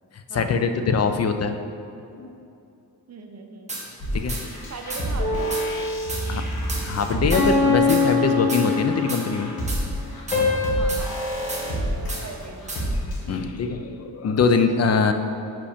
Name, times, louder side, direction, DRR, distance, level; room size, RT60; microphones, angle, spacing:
voice 1, 0.3-1.6 2.1-2.3 4.1-4.4 6.3-6.5 6.8-9.5 13.3-15.1, left 5 dB, 40° left, 7 dB, 0.4 m, -22 dB
voice 2, 3.1-3.7 4.7-5.9 10.7-11.1 12.2-12.8, right 4 dB, 45° right, 3 dB, 0.6 m, -39 dB
sound 1, 3.7-3.8 4.3-4.4 4.9-5.0 5.5-5.6 6.1-6.2 6.7-6.8 7.3-7.4 7.9-8.0 8.5-8.6 9.1-9.2 9.7-9.8 10.3-10.4 10.9-11.0 11.5-11.6 12.1-12.2 12.7-12.8, right 2 dB, 20° right, 1.1 m, -32 dB
sound 2, 4.0-13.4, equal, 65° left, 1.5 m, -30 dB
sound 3, 5.2-6.2 7.3-9.2 10.3-10.7, left 3 dB, 20° left, 1.5 m, -22 dB
5.8 x 5.0 x 5.0 m, 2.7 s
wide cardioid pair, 160°, 39 cm